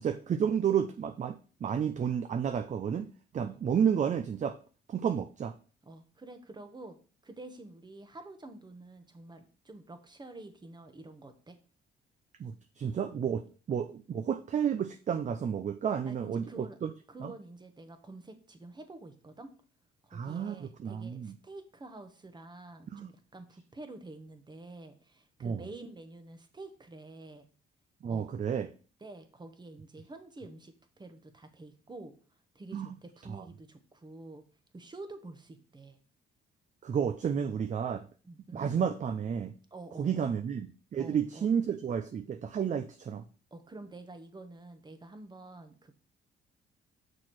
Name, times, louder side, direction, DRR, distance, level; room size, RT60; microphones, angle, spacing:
voice 1, 0.0-4.6 4.9-5.6 12.4-16.9 17.2-17.3 20.1-21.3 22.9-23.1 25.4-25.7 28.0-28.7 32.7-32.9 33.3-33.4 36.8-38.1 38.5-39.5 40.0-43.2, right 7 dB, 40° right, 9 dB, 0.5 m, -31 dB
voice 2, 5.8-7.0 7.2-11.6 16.1-16.8 17.1-19.5 20.0-27.4 28.1-28.3 29.0-32.1 32.5-34.4 34.7-36.0 38.2-38.7 39.7-40.4 41.0-41.5 43.5-45.9, right 2 dB, 20° right, 8 dB, 1.1 m, -48 dB
6.2 x 4.4 x 4.7 m, 0.38 s
cardioid pair, 90°, 20 cm